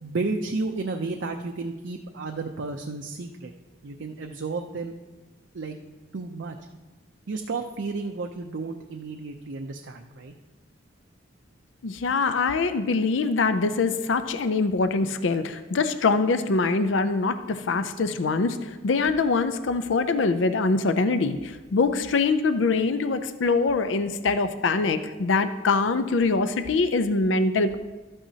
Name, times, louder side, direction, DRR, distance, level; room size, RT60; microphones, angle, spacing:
voice 1, 0.0-3.5 3.8-4.9 5.5-5.8 6.1-6.6 7.3-10.3, right 3 dB, 70° right, 4 dB, 0.6 m, -32 dB
voice 2, 11.8-27.8, left 4 dB, 80° left, 10 dB, 0.5 m, -24 dB
13.0 x 8.8 x 2.8 m, 1.2 s
head